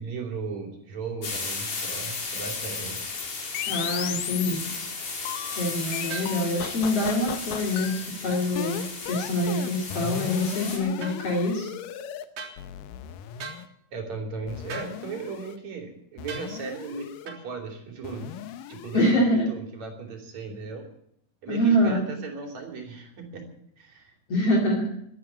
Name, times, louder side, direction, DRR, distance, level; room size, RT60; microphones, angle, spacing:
voice 1, 0.0-3.0 13.9-18.3 18.7-20.8 21.4-23.4 23.8-24.1, right 4 dB, 55° right, 2 dB, 4.3 m, -36 dB
sound 1, 1.2-10.8, left 4 dB, 70° left, 5.2 m, -35 dB
sound 2, 1.8-4.9 5.3-12.2 12.6-13.7 14.5-15.6 16.2-17.3 18.0-19.1, left 10 dB, 90° left, 2.6 m, -36 dB
voice 2, 3.7-4.7 5.6-11.7 18.9-19.5 21.5-22.0 24.3-24.8, equal, 50° left, -2 dB, 3.5 m, -25 dB
sound 3, 6.1-6.4 11.0-11.2 12.4-12.6 13.4-13.6 14.7-14.9 16.3-16.5 17.3-17.4, right 5 dB, 90° right, 5.2 m, -37 dB
12.5 x 12.0 x 9.6 m, 0.70 s
omnidirectional pair, 3.8 m